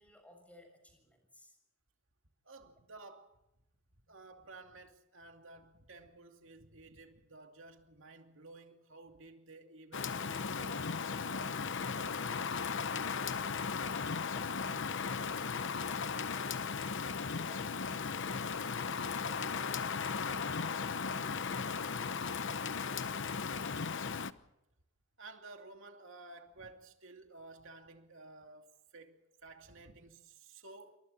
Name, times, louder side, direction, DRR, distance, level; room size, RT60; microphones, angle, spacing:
voice 1, 0.0-1.6, equal, 5° left, 7.1 m, -59 dB
voice 2, 2.4-3.4 4.1-13.6 25.2-31.0, right 3 dB, 60° right, 2.6 m, -54 dB
Rain, 9.9-24.3, left 5 dB, 60° left, 0.9 m, -36 dB
28.5 x 24.0 x 4.3 m
head